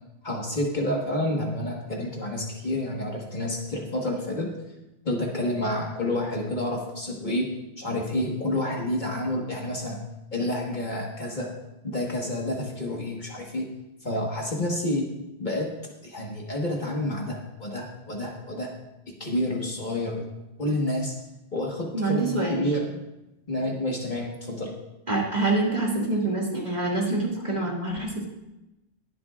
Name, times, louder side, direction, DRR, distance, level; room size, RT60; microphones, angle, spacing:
voice 1, 0.2-4.5 5.1-7.5 7.8-10.0 10.3-11.5 11.8-13.7 14.0-15.1 15.4-15.7 16.0-18.7 19.2-20.2 20.6-21.1 21.5-22.9 23.5-24.7, left 1 dB, 45° left, -1 dB, 1.6 m, -29 dB
voice 2, 21.9-22.7 25.1-28.3, right 2 dB, 40° right, -3 dB, 2.3 m, -26 dB
21.5 x 7.6 x 2.4 m, 0.95 s
omnidirectional pair, 1.1 m